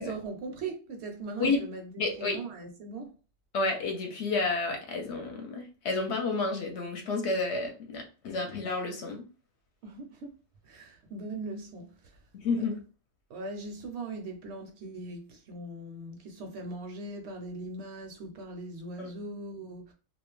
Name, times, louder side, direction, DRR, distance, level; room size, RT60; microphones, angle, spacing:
voice 1, 0.0-3.1 9.8-10.3 10.6-12.2 13.3-19.9, right 3 dB, 65° right, 0.8 m, -40 dB
voice 2, 2.0-2.4 3.5-9.2 12.3-12.8 19.0-19.1, left 3 dB, 65° left, 0.9 m, -30 dB
2.4 x 2.1 x 3.0 m
omnidirectional pair, 1.3 m